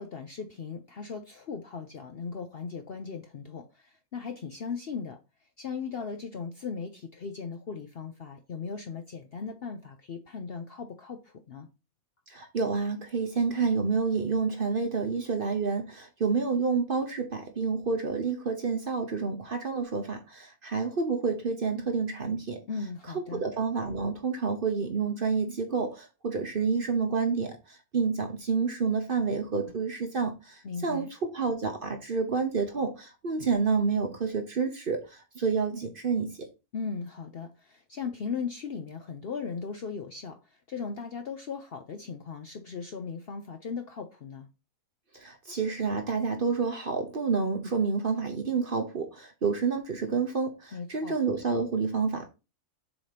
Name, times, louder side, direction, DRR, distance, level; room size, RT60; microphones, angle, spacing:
voice 1, 0.0-5.2 5.6-11.7 22.6-23.4 30.6-31.1 36.7-40.4 40.7-44.5 50.7-51.2, left 5 dB, 55° left, 0.7 m, -37 dB
voice 2, 12.3-22.6 23.1-27.5 27.9-30.3 30.8-35.0 35.4-36.3 45.2-52.3, right 5 dB, 45° right, 0.8 m, -29 dB
7.1 x 2.8 x 5.0 m
omnidirectional pair, 1.6 m